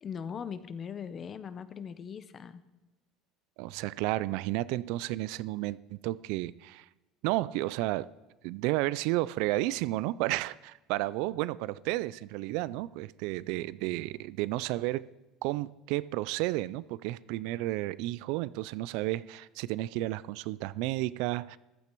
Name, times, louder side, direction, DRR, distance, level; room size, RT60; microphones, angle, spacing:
voice 1, 0.0-2.6, left 7 dB, 30° left, 0.7 m, -40 dB
voice 2, 3.6-6.9 7.2-8.1 8.4-15.1 15.4-21.6, right 17 dB, 70° right, 0.3 m, -32 dB
14.5 x 12.0 x 4.6 m
cardioid pair, 145°, 0 cm